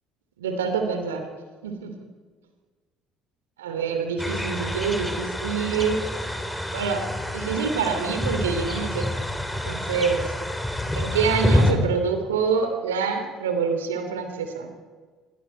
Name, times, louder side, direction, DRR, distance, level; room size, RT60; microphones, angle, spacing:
voice 1, 0.4-1.3 1.6-1.9 3.6-6.0 6.7-7.0 7.3-9.0 9.5-10.3 10.9-14.7, right 5 dB, 80° right, 6 dB, 2.7 m, -26 dB
sound 1, 4.2-11.7, left 1 dB, 5° left, 4.1 m, -27 dB
27.0 x 22.0 x 4.5 m, 1.5 s
figure-of-eight pair, 55°, 0 cm